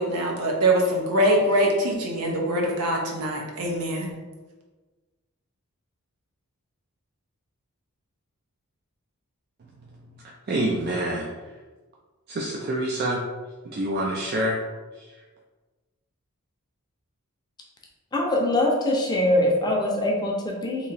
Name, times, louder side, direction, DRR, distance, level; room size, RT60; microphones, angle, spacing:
voice 1, 0.0-4.1, right 1 dB, 90° right, 0 dB, 0.8 m, -23 dB
voice 2, 10.5-11.3 12.3-13.2 13.7-14.6, right 1 dB, 45° right, -1 dB, 0.4 m, -26 dB
voice 3, 18.1-20.9, left 1 dB, 20° left, -1 dB, 0.6 m, -23 dB
3.0 x 2.7 x 4.0 m, 1.3 s
head